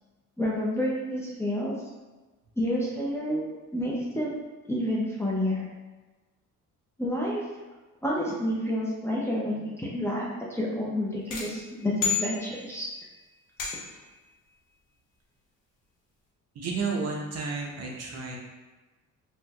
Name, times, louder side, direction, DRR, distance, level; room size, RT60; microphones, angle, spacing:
voice 1, 0.4-1.7 2.6-3.4 3.7-4.4 4.7-5.7 7.0-7.4 8.0-12.9, equal, 10° left, -6 dB, 0.4 m, -29 dB
sound 1, 11.3-12.9 13.6-14.1, left 7 dB, 90° left, 0.9 m, -32 dB
voice 2, 16.5-18.4, right 4 dB, 50° right, -1 dB, 0.6 m, -31 dB
3.2 x 2.5 x 2.2 m, 1.2 s
cardioid pair, 120°, 32 cm